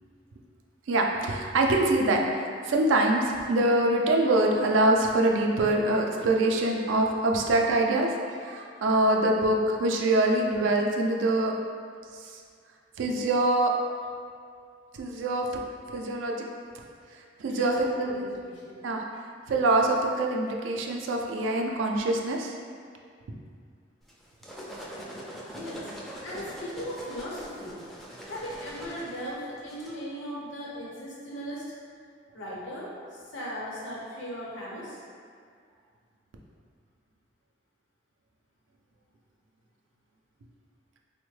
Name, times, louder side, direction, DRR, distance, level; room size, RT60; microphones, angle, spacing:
voice 1, 0.9-11.5 12.1-12.4 13.0-13.7 14.9-15.5 15.9-16.4 17.1-18.3 18.8-19.0 19.5-22.5, right 2 dB, 90° right, 1 dB, 0.4 m, -24 dB
voice 2, 17.5-18.8 25.5-25.9 26.2-27.8 28.3-31.6 32.3-35.0, equal, 85° left, -6 dB, 0.8 m, -38 dB
sound 1, 24.1-30.0, equal, ahead, 0.3 m, -42 dB
3.5 x 2.1 x 3.1 m, 2.1 s
head